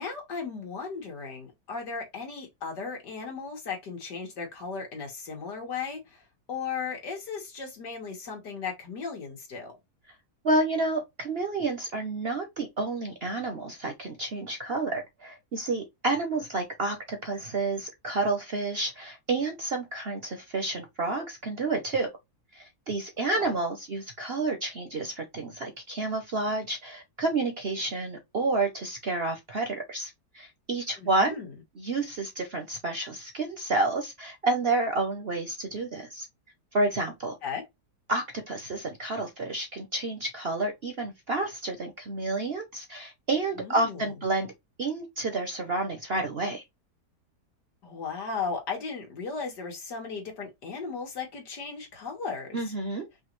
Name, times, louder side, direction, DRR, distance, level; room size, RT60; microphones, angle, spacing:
voice 1, 0.0-6.2 6.5-9.7 23.2-23.5 31.0-31.5 37.4-37.6 43.6-44.1 47.8-52.6, left 5 dB, 80° left, 2.4 m, -36 dB
voice 2, 10.4-22.1 22.5-31.4 31.8-36.3 36.7-37.4 38.1-44.5 44.8-46.6 52.5-53.1, right 2 dB, 45° right, 0.9 m, -30 dB
5.4 x 2.6 x 3.1 m
omnidirectional pair, 1.8 m